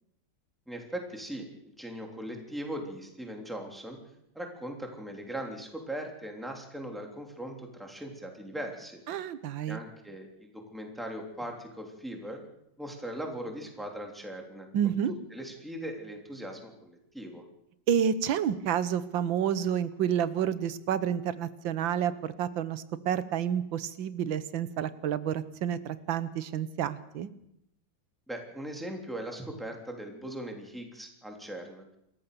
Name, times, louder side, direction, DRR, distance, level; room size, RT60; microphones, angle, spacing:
voice 1, 0.7-4.0 4.3-9.0 9.7-12.4 12.8-17.4 28.3-31.8, right 1 dB, ahead, 2 dB, 3.3 m, -39 dB
voice 2, 9.1-9.8 14.7-15.1 17.9-27.3, right 9 dB, 90° right, 15 dB, 1.8 m, -29 dB
27.5 x 14.0 x 6.8 m, 0.78 s
omnidirectional pair, 2.0 m